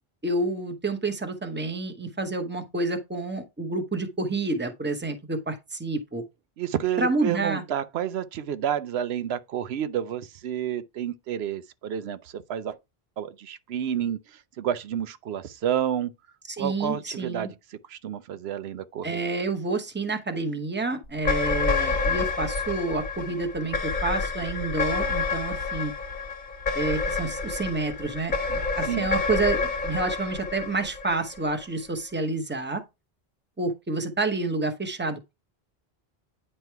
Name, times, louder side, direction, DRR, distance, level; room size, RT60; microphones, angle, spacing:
voice 1, 0.2-6.2 7.0-7.6 16.5-17.5 19.0-25.9 26.7-32.8 33.6-35.3, right 3 dB, 10° right, 0.9 m, -29 dB
voice 2, 6.6-12.8 13.2-14.2 14.6-16.1 16.6-17.5 17.9-19.2 28.8-29.1, right 9 dB, 80° right, 0.9 m, -30 dB
sound 1, 21.1-31.6, left 4 dB, 50° left, 1.2 m, -28 dB
9.4 x 3.3 x 4.5 m
omnidirectional pair, 1.0 m